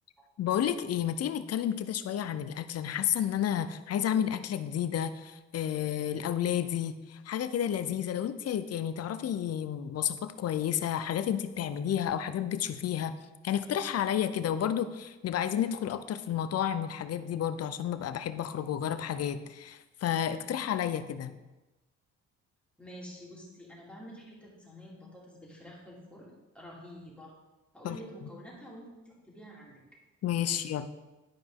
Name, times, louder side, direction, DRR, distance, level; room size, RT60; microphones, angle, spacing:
voice 1, 0.4-13.1 13.4-21.3 27.8-28.0 30.2-30.9, left 9 dB, 55° left, 12 dB, 0.6 m, -31 dB
voice 2, 22.8-27.4 27.7-29.8 30.4-30.6, equal, 5° left, -5 dB, 2.7 m, -48 dB
11.5 x 4.9 x 3.7 m, 1.1 s
cardioid pair, 90°, 30 cm